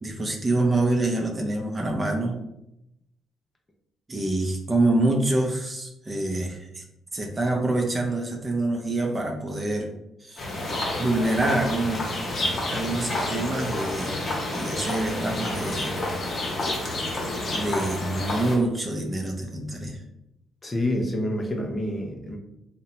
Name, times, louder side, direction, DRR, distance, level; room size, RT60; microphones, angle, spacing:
voice 1, 0.0-2.4 4.1-6.8 7.1-9.9 10.2-10.5 11.0-12.1 12.7-14.2 14.5-16.0 17.5-20.0, right 2 dB, 25° right, 1 dB, 0.5 m, -26 dB
sound 1, 10.4-18.6, left 1 dB, 50° left, 0.8 m, -29 dB
voice 2, 20.6-22.4, left 1 dB, 25° left, 2 dB, 0.5 m, -27 dB
2.7 x 2.1 x 2.8 m, 0.85 s
cardioid pair, 90°, 0 cm